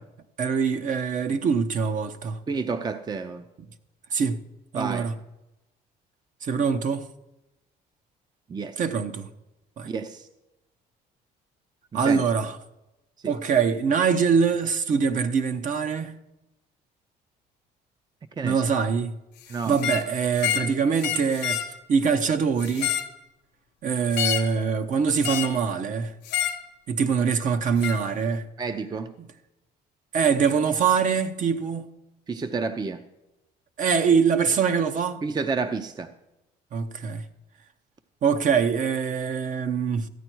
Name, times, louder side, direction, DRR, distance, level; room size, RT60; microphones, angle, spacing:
voice 1, 0.4-2.4 4.1-4.4 4.7-5.1 6.4-7.1 8.8-9.3 9.8-9.9 11.9-12.6 13.2-16.1 18.4-19.1 19.7-21.6 21.9-23.0 23.8-26.1 26.9-28.4 29.2-29.3 30.1-31.9 33.8-35.2 36.7-37.2 38.2-40.1, right 6 dB, 50° right, 0.8 m, -23 dB
voice 2, 2.5-3.4 4.8-5.1 8.5-8.8 9.9-10.2 11.9-12.2 13.2-13.3 18.4-18.6 19.5-19.8 28.6-29.1 32.3-33.0 35.2-36.1, right 4 dB, 25° right, 0.6 m, -30 dB
sound 1, 19.7-20.1 20.4-20.7 21.0-21.7 22.6-23.1 24.1-24.5 25.2-25.6 26.3-26.6 27.8-28.0, left 11 dB, 80° left, 0.9 m, -28 dB
14.0 x 9.0 x 4.6 m
cardioid pair, 110°, 17 cm